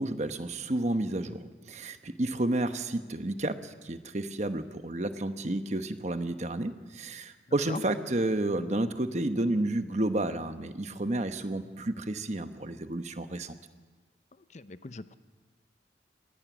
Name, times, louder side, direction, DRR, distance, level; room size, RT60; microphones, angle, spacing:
voice 1, 0.0-13.6, right 1 dB, 40° right, 9 dB, 1.0 m, -31 dB
voice 2, 14.5-15.1, left 3 dB, 40° left, 13 dB, 0.6 m, -40 dB
24.5 x 18.5 x 6.2 m, 1.3 s
head